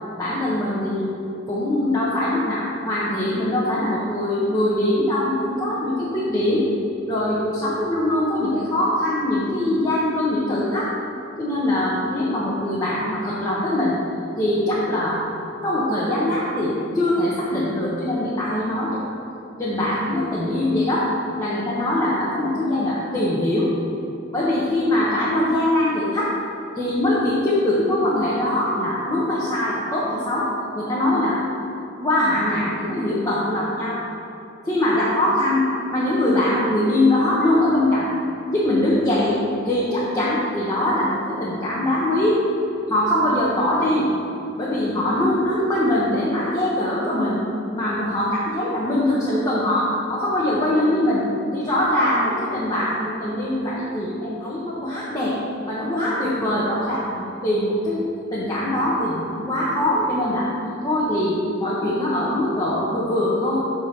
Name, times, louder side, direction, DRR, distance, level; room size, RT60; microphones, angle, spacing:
voice 1, 0.2-1.1 1.5-6.7 7.1-10.9 11.4-14.0 14.4-15.2 15.6-19.1 19.6-21.1 21.4-23.7 24.3-26.3 26.7-31.4 32.0-34.0 34.6-35.7 35.9-38.1 38.5-42.4 42.9-44.1 44.6-47.4 47.7-51.2 51.5-55.4 55.7-58.0 58.3-60.5 60.8-63.7, left 1 dB, 20° left, -8 dB, 1.2 m, -22 dB
9.5 x 3.8 x 6.5 m, 2.7 s
head